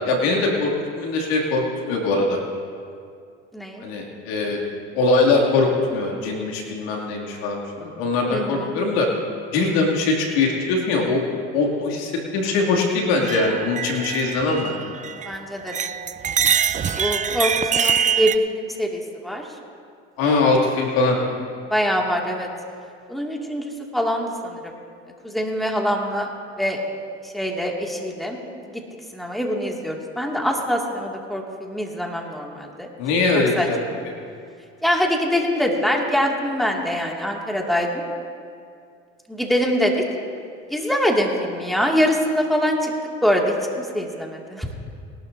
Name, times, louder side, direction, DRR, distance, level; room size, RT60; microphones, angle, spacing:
voice 1, 0.0-2.4 3.8-4.6 4.9-9.1 9.5-11.2 11.5-14.7 20.2-21.2 33.0-33.8, left 3 dB, 80° left, -1 dB, 2.6 m, -21 dB
voice 2, 3.5-3.9 8.3-8.8 15.3-16.0 17.0-19.5 20.2-20.3 21.7-22.5 23.1-24.8 25.2-26.3 26.6-26.8 27.2-28.4 29.1-32.9 33.6-33.7 34.8-38.0 39.3-40.0 40.7-42.9 43.2-44.7, equal, ahead, 0 dB, 2.1 m, -24 dB
sound 1, 13.2-15.4 15.7-18.4, right 7 dB, 25° right, 0.5 m, -24 dB
22.0 x 12.0 x 2.7 m, 2.3 s
hypercardioid pair, 75°, 31 cm